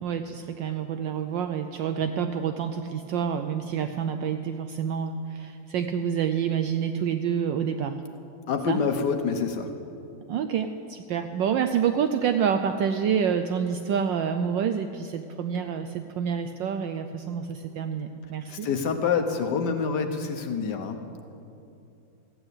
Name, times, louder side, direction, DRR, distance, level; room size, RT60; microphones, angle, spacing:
voice 1, 0.0-8.0 8.7-8.8 10.3-18.7, right 7 dB, 75° right, 7 dB, 1.1 m, -28 dB
voice 2, 8.5-9.7 18.5-21.0, left 5 dB, 60° left, 6 dB, 1.3 m, -26 dB
15.0 x 9.6 x 8.1 m, 2.6 s
omnidirectional pair, 2.3 m